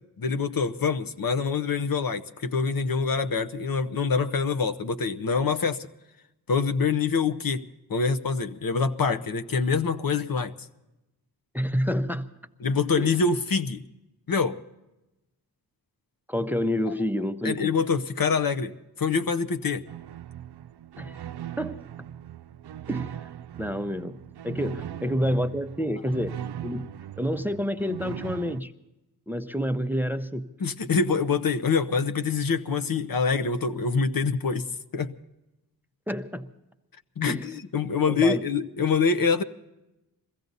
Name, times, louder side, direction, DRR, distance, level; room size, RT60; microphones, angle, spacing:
voice 1, 0.2-5.9 6.5-7.6 7.9-10.5 12.6-13.8 14.3-14.6 17.4-19.8 30.6-34.7 34.9-35.1 37.2-39.4, left 5 dB, 60° left, 10 dB, 0.9 m, -25 dB
voice 2, 11.5-12.3 13.0-13.2 16.3-17.7 21.0-21.3 21.6-21.8 22.9-23.3 23.6-24.2 24.4-26.3 26.6-26.9 27.2-28.7 29.3-30.5 36.1-36.5 37.3-37.5 38.1-38.4, equal, 5° right, 10 dB, 0.7 m, -28 dB
sound 1, 19.9-28.6, right 10 dB, 80° right, 0.5 m, -39 dB
22.5 x 15.5 x 4.0 m, 0.96 s
wide cardioid pair, 100°, 38 cm